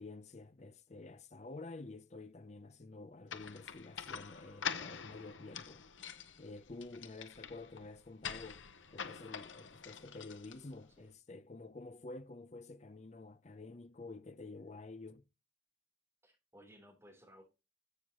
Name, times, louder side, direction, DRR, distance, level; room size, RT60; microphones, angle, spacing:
voice 1, 0.0-5.8 6.4-8.7 8.9-15.3, left 3 dB, 35° left, 0.6 m, -50 dB
sound 1, 3.3-10.9, left 7 dB, 90° left, 0.9 m, -46 dB
voice 2, 16.2-17.4, equal, 15° right, 3.5 m, -59 dB
11.5 x 7.1 x 3.0 m
head